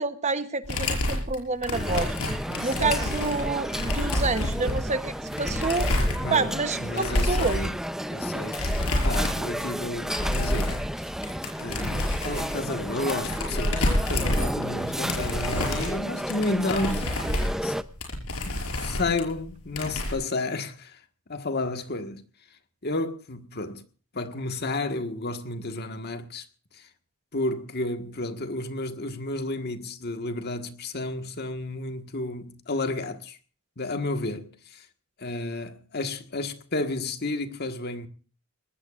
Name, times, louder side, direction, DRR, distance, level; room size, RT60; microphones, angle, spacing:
voice 1, 0.0-2.1 2.6-5.9 6.3-7.6, right 3 dB, 30° right, 1.0 m, -28 dB
sound 1, 0.6-6.6 7.0-7.7 8.5-9.5 9.8-11.0 11.2-14.8 15.1-19.4 19.7-20.1, left 1 dB, 85° left, 5.8 m, -28 dB
sound 2, 1.7-17.8, equal, ahead, 0.6 m, -32 dB
voice 2, 2.4-3.0 6.2-7.7 8.1-8.7 9.0-11.1 11.6-17.1 17.6-17.7 18.4-21.0 21.3-22.2 22.8-23.8 24.1-26.4 26.7-26.9 27.3-33.4 33.8-34.9 35.2-38.1, left 2 dB, 50° left, 1.6 m, -32 dB
22.5 x 19.5 x 2.5 m
head